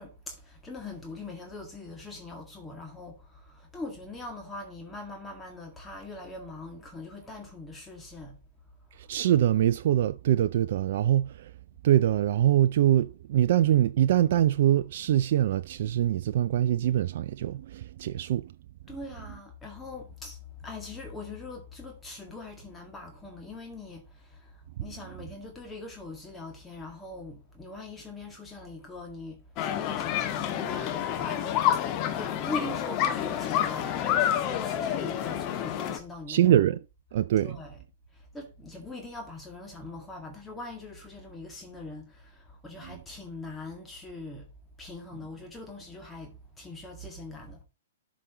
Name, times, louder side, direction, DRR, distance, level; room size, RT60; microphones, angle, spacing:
voice 1, 0.0-8.4 8.9-9.1 18.9-36.6 37.4-37.8 38.1-44.5 44.8-47.6, left 2 dB, 10° left, 1.9 m, -42 dB
voice 2, 9.0-11.5 11.8-18.5 36.3-36.8 37.1-37.6, right 12 dB, 55° right, 0.3 m, -24 dB
sound 1, 29.6-36.0, left 10 dB, 35° left, 1.3 m, -28 dB
12.0 x 5.0 x 3.8 m
figure-of-eight pair, 115°, 0 cm